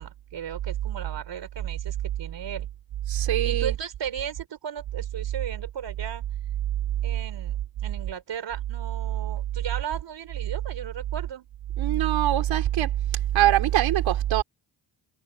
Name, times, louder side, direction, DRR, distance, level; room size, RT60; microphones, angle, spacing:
voice 1, 0.0-2.7 3.4-6.3 7.0-11.5, right 8 dB, 65° right, 3.9 m, -36 dB
voice 2, 3.1-3.7 11.8-12.9 13.3-14.4, right 12 dB, 85° right, 3.2 m, -22 dB
supercardioid pair, 55°, 45 cm